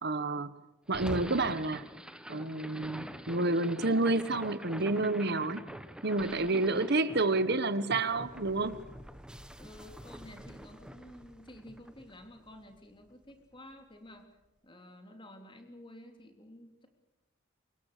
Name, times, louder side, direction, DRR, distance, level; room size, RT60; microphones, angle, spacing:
voice 1, 0.0-0.5 0.9-1.8 2.3-5.6 6.0-8.8, right 2 dB, 55° right, 14 dB, 1.3 m, -29 dB
sound 1, 0.9-13.1, equal, 5° right, 1.3 m, -46 dB
voice 2, 6.4-6.8 9.6-14.3 14.6-16.9, left 1 dB, 25° left, 5 dB, 3.5 m, -51 dB
25.5 x 22.0 x 6.8 m, 1.0 s
head